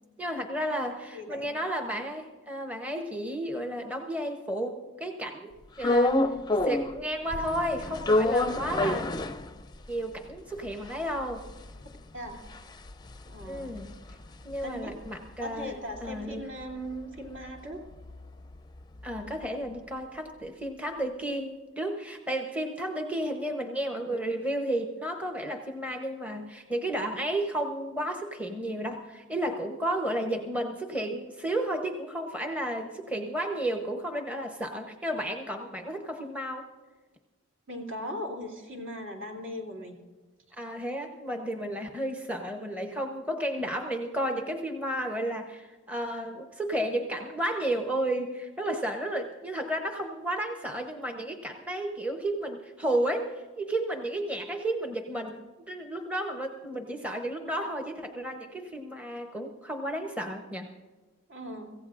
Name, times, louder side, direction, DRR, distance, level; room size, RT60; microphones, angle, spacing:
voice 1, 0.2-6.2 6.6-9.3 9.9-11.5 13.5-14.0 14.4-15.7 16.0-16.5 19.0-36.7 40.6-60.7, right 1 dB, 5° right, 3 dB, 0.8 m, -32 dB
voice 2, 1.1-1.5 12.1-12.4 13.3-13.8 14.6-14.9 15.4-17.8 37.7-40.0 61.3-61.7, equal, 60° right, 0 dB, 2.9 m, -38 dB
sound 1, 5.8-7.0 7.3-9.9 10.3-10.4 10.6-15.1 15.4-19.5, left 2 dB, 20° left, 0.5 m, -29 dB
25.0 x 15.5 x 2.5 m, 1.3 s
head